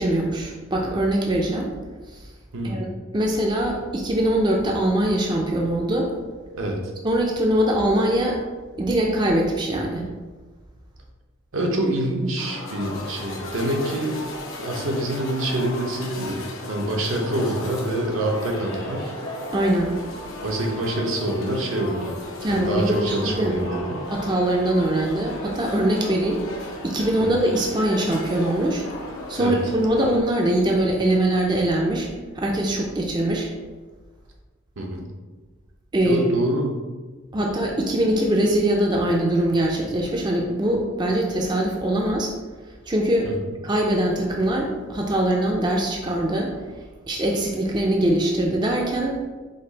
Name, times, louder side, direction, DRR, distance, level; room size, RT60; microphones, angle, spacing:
voice 1, 0.0-1.7 2.1-2.2 2.6-2.9 3.1-6.1 7.0-8.4 8.8-10.1 19.5-20.0 22.4-23.6 24.1-28.8 29.3-32.1 32.4-33.5 35.9-36.2 37.3-42.3 42.9-43.3 43.6-46.5 47.1-49.2, right 1 dB, 20° right, -1 dB, 0.4 m, -22 dB
voice 2, 2.5-2.8 6.5-6.8 11.5-14.2 14.6-16.4 16.7-19.1 20.4-22.1 22.5-24.0 27.2-27.3 29.4-29.6 34.8-35.1 36.0-36.8 43.2-43.3, right 1 dB, 75° right, 0 dB, 0.8 m, -26 dB
sound 1, 12.4-30.2, left 1 dB, 75° left, 0.8 m, -35 dB
5.2 x 2.4 x 3.9 m, 1.3 s
head